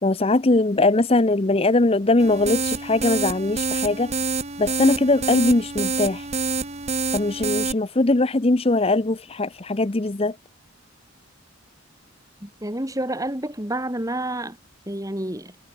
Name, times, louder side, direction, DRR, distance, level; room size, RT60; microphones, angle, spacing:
voice 1, 0.0-4.1 4.6-6.3 7.1-10.4, left 2 dB, 30° left, 0.7 m, -21 dB
sound 1, 2.2-7.7, right 4 dB, 30° right, 3.1 m, -27 dB
voice 2, 12.4-14.6 14.9-15.5, right 1 dB, 15° right, 3.0 m, -29 dB
head